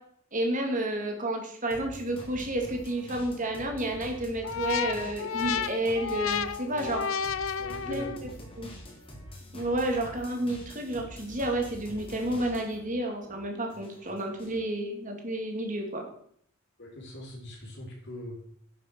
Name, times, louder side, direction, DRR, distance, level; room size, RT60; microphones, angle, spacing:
voice 1, 0.3-7.1 7.9-8.3 8.6-8.7 9.5-16.1, right 1 dB, 40° right, 2 dB, 2.5 m, -31 dB
sound 1, 1.7-12.9 13.2-14.6, equal, 25° left, 3.0 m, -46 dB
sound 2, 4.4-8.3, left 7 dB, 70° left, 0.6 m, -32 dB
voice 2, 7.5-8.1 8.6-8.7 16.8-18.4, left 1 dB, 55° left, 0 dB, 3.6 m, -41 dB
10.5 x 6.8 x 6.1 m, 0.66 s
head